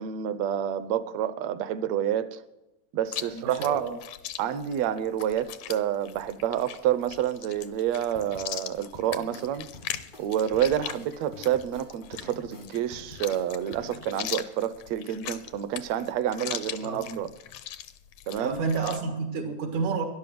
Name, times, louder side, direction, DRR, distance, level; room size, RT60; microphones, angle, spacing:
voice 1, 0.0-2.4 2.9-3.8 4.4-9.7 10.2-17.3 18.3-18.6, right 10 dB, 70° right, 1.9 m, -28 dB
Chewing mastication, 3.1-19.0, left 12 dB, 75° left, 1.9 m, -40 dB
voice 2, 3.2-3.9 16.8-17.1 18.4-20.0, right 4 dB, 90° right, 3.2 m, -30 dB
sound 1, 8.1-14.2, left 2 dB, 40° left, 0.7 m, -48 dB
12.0 x 11.5 x 7.8 m
omnidirectional pair, 3.3 m